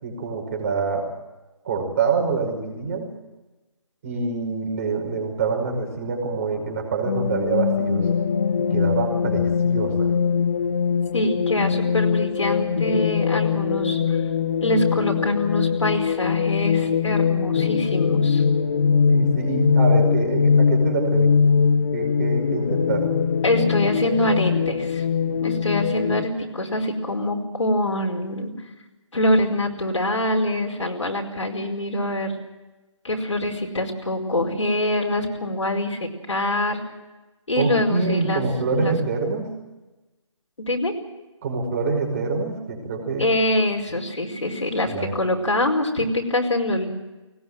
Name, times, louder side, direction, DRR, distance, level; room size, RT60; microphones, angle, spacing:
voice 1, 0.0-1.1 1.6-3.1 4.0-8.1 8.6-10.1 19.1-21.6 21.9-23.1 37.6-39.5 41.4-43.3 44.9-45.1, right 4 dB, 25° right, 3 dB, 5.5 m, -25 dB
sound 1, 7.1-26.2, left 6 dB, 35° left, 1.3 m, -22 dB
voice 2, 11.1-14.2 14.6-18.4 23.4-25.0 25.4-28.5 29.1-32.3 33.0-36.8 37.5-38.4 38.8-38.9 40.6-40.9 43.2-46.9, left 1 dB, 70° left, 1 dB, 4.9 m, -24 dB
20.5 x 19.5 x 7.9 m, 1.1 s
figure-of-eight pair, 150°, 17 cm